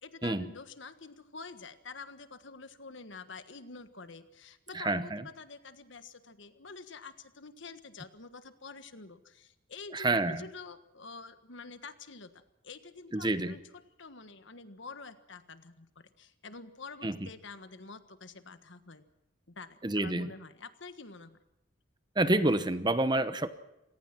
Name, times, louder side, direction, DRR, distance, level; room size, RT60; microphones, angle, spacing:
voice 1, 0.0-13.6 14.0-19.0 19.5-21.4, left 4 dB, 65° left, 11 dB, 1.5 m, -48 dB
voice 2, 4.7-5.2 9.9-10.4 13.1-13.6 17.0-17.1 19.8-20.3 22.2-23.5, right 2 dB, 20° right, 12 dB, 0.9 m, -28 dB
26.5 x 18.5 x 6.0 m, 0.92 s
head